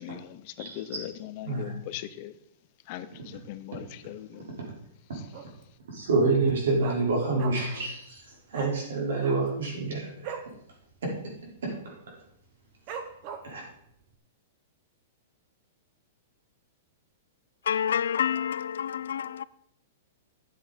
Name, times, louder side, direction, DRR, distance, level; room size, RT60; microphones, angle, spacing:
voice 1, 0.0-2.3 2.9-4.4 5.1-5.2, left 13 dB, 30° left, 0.5 m, -40 dB
Dog, 5.3-5.7 6.0-6.1 6.4-7.8 8.1-8.2 8.5-8.7 9.1-10.5 10.9-11.1 11.3-11.7 12.2-12.3 12.9-13.7 14.1-14.2, right 7 dB, 30° right, 0.9 m, -40 dB
voice 2, 5.9-8.2 8.5-10.3 11.0-11.1 11.6-12.0 13.4-13.6, right 3 dB, 80° right, 4.3 m, -27 dB
voice 3, 17.7-19.4, left 8 dB, 90° left, 0.4 m, -28 dB
12.5 x 7.8 x 4.2 m
supercardioid pair, 175°, 0 cm